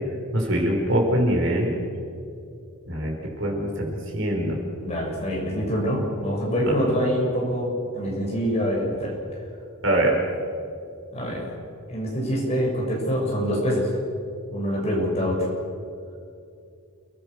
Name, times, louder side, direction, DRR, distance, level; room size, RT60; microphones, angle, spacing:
voice 1, 0.3-1.7 2.9-3.9 4.1-4.6 6.6-6.7 9.8-10.1, right 1 dB, 55° right, 0 dB, 5.2 m, -23 dB
voice 2, 4.8-9.1 11.1-11.5 11.9-13.9 14.5-15.5, equal, 30° left, -3 dB, 7.0 m, -25 dB
29.5 x 19.0 x 6.6 m, 2.5 s
head